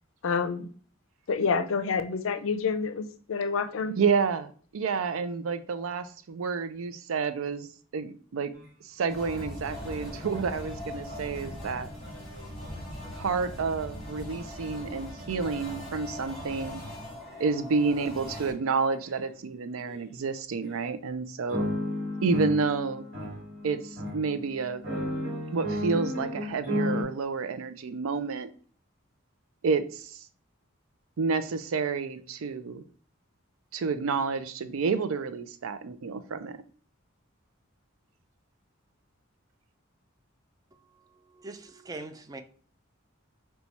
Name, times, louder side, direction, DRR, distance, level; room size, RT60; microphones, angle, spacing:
voice 1, 0.2-0.7 1.3-4.0, left 5 dB, 75° left, 0.5 m, -28 dB
voice 2, 3.9-7.7 7.9-8.5 8.8-11.9 13.1-16.8 17.4-21.7 22.2-23.0 23.6-24.8 25.5-28.5 29.6-30.2 31.2-32.8 33.7-36.6, right 5 dB, 80° right, 0.4 m, -29 dB
sound 1, 8.5-8.6 9.0-13.4 14.7-14.9 15.5-15.7 16.2-16.6 17.2-17.6 18.2-18.5 19.0-19.2 19.9-20.0 20.7-20.8 21.5-27.0, left 1 dB, 55° right, 1.5 m, -35 dB
sound 2, 9.1-18.5, left 1 dB, ahead, 1.4 m, -40 dB
voice 3, 40.9-42.4, right 2 dB, 20° right, 0.4 m, -42 dB
4.4 x 2.3 x 4.0 m
head